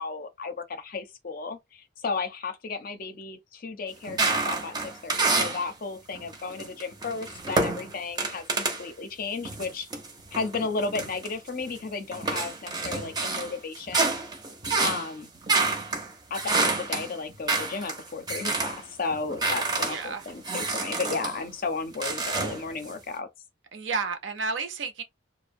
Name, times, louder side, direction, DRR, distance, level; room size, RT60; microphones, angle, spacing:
voice 1, 0.0-9.9 10.3-14.1 14.8-15.3 16.3-23.3, left 4 dB, 45° left, 0.5 m, -34 dB
sound 1, 4.1-5.7 6.1-8.8 9.4-11.8 12.1-18.8 19.1-21.4 21.9-22.9, right 3 dB, 20° right, 0.5 m, -28 dB
voice 2, 19.8-20.3 23.7-25.0, right 4 dB, 65° right, 0.5 m, -31 dB
2.5 x 2.0 x 2.5 m
head